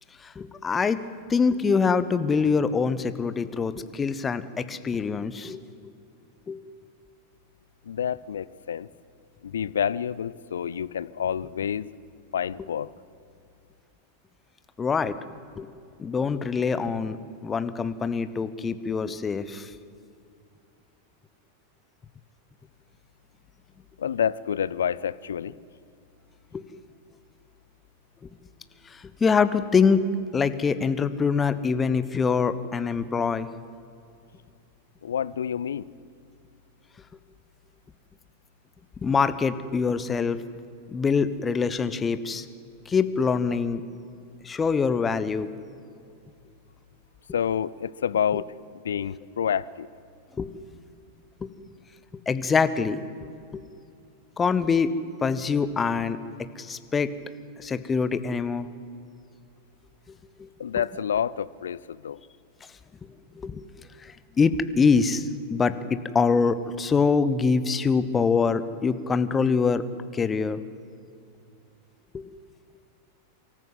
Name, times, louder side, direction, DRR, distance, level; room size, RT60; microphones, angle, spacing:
voice 1, 0.2-1.0 1.3-5.6 6.5-6.6 14.8-15.2 15.6-15.7 16.0-17.2 17.4-19.7 26.5-26.6 28.9-30.1 30.3-33.5 39.0-40.4 40.9-42.4 42.9-43.8 44.4-45.5 50.4-50.5 51.4-51.5 52.3-53.0 53.5-53.6 54.4-54.9 55.2-56.2 56.6-57.2 57.6-58.7 60.4-60.5 63.4-69.8 70.1-70.6 72.1-72.3, left 5 dB, 20° left, 13 dB, 0.9 m, -24 dB
voice 2, 7.8-8.9 9.4-11.9 12.3-12.9 24.0-25.5 35.0-35.9 47.3-48.5 48.8-49.9 60.6-62.2, left 8 dB, 65° left, 20 dB, 0.4 m, -28 dB
24.0 x 14.0 x 7.9 m, 2.5 s
figure-of-eight pair, 90°, 0 cm